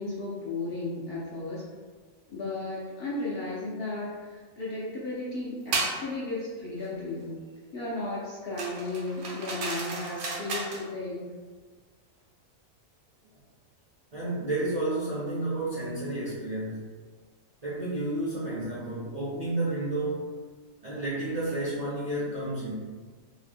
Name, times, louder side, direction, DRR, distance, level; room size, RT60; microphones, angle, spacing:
voice 1, 0.0-1.6 2.3-7.4 7.7-11.3, left 2 dB, 65° left, -7 dB, 0.6 m, -34 dB
sound 1, 5.7-6.0 8.6-10.8, right 3 dB, 70° right, 0.9 m, -33 dB
voice 2, 14.1-16.8 17.6-20.4 20.8-22.9, right 2 dB, 45° right, -9 dB, 0.5 m, -31 dB
2.8 x 2.1 x 3.3 m, 1.4 s
omnidirectional pair, 1.4 m